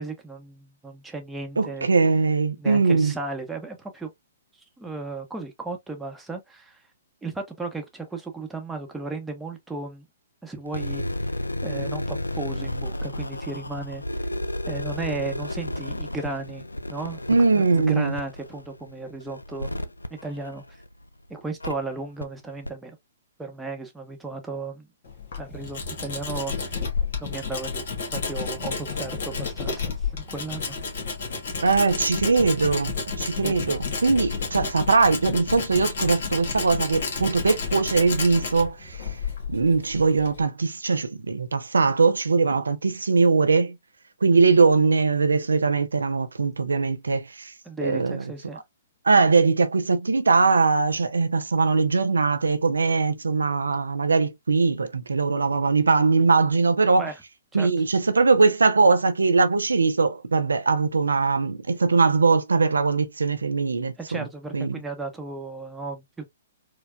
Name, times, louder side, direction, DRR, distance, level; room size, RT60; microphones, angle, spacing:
voice 1, 0.0-1.9 2.6-4.1 4.8-6.8 7.2-10.1 10.4-11.0 11.6-14.0 14.7-16.6 16.9-17.2 17.5-19.8 20.1-20.6 21.3-23.0 23.4-24.9 25.4-26.8 27.2-27.8 28.1-30.8 33.4-33.6 44.3-44.6 47.6-48.6 57.0-57.2 57.5-57.7 64.0-66.3, right 3 dB, 5° right, 0.9 m, -35 dB
voice 2, 1.6-3.1 17.3-18.1 31.6-39.0 39.5-43.8 44.2-47.5 47.8-48.2 49.0-57.1 57.5-64.2 64.5-64.8, right 4 dB, 80° right, 0.5 m, -21 dB
sound 1, 10.7-21.0 21.6-21.7 22.2-22.3 22.6-22.7, left 1 dB, 90° left, 0.4 m, -32 dB
Tools, 25.0-40.4, left 5 dB, 55° left, 1.4 m, -31 dB
4.5 x 2.3 x 2.3 m
figure-of-eight pair, 120°, 0 cm